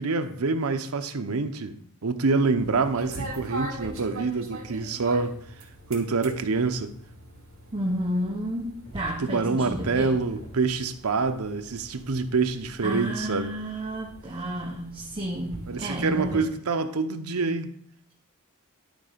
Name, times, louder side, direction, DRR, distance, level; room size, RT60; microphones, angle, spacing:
voice 1, 0.0-1.7 2.0-5.4 5.9-6.9 9.2-13.5 15.7-17.7, right 4 dB, 80° right, 0.7 m, -26 dB
sound 1, 2.6-16.4, right 1 dB, 65° right, 2.3 m, -42 dB
voice 2, 7.7-10.2 12.8-16.5, equal, 25° right, 0.8 m, -31 dB
11.5 x 3.8 x 5.0 m
head